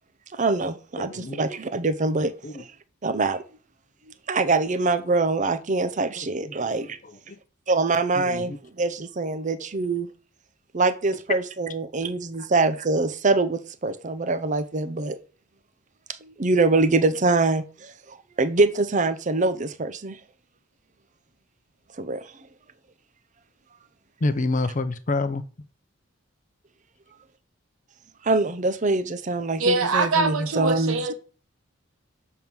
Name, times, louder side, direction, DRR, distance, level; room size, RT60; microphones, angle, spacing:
voice 1, 0.3-2.3 2.6-2.7 3.0-3.4 4.3-7.0 7.7-10.1 10.7-15.2 16.2-20.2 22.0-22.2 28.2-31.0, right 3 dB, 35° right, 0.6 m, -24 dB
voice 2, 1.0-1.4 2.4-2.6 6.2-6.6 7.0-7.4 8.1-8.6 24.2-25.4, left 2 dB, 40° left, 0.6 m, -28 dB
voice 3, 29.6-31.1, right 3 dB, 85° right, 1.1 m, -23 dB
7.1 x 3.6 x 6.0 m
head